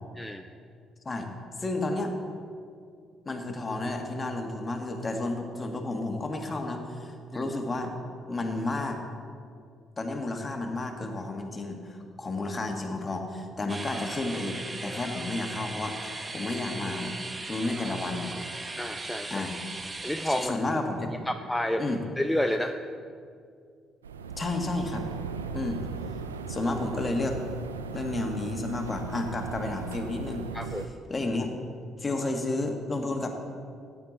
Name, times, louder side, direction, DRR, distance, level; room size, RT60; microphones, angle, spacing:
voice 1, 1.6-2.2 3.3-7.9 8.3-9.0 10.0-17.1 17.5-18.3 19.3-19.6 20.3-21.1 21.8-22.0 24.4-25.0 25.5-25.8 26.5-27.4 27.9-30.5 31.1-31.5 32.0-33.4, left 2 dB, 30° left, 4 dB, 1.8 m, -31 dB
sound 1, 13.7-20.5, right 2 dB, 25° right, 1.1 m, -38 dB
voice 2, 18.8-19.5 20.0-20.5 21.3-21.8 22.2-22.8 30.5-30.9, left 1 dB, 5° left, 6 dB, 0.6 m, -29 dB
sound 2, 24.0-30.9, right 5 dB, 85° right, 0.4 m, -37 dB
15.0 x 8.8 x 4.2 m, 2.3 s
figure-of-eight pair, 45°, 0 cm